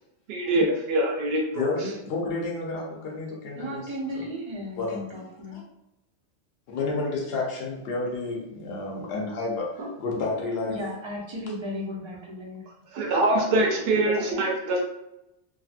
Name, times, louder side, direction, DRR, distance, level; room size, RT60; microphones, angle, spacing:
voice 1, 0.3-1.7 12.9-14.8, right 1 dB, 70° right, 0 dB, 0.8 m, -24 dB
voice 2, 1.5-3.9 4.1-4.3 4.8-5.0 5.5-5.6 6.7-10.8, left 3 dB, 65° left, -1 dB, 0.9 m, -30 dB
voice 3, 3.5-5.6 10.7-12.6, equal, 35° right, -3 dB, 0.5 m, -35 dB
2.7 x 2.5 x 2.4 m, 0.86 s
omnidirectional pair, 1.1 m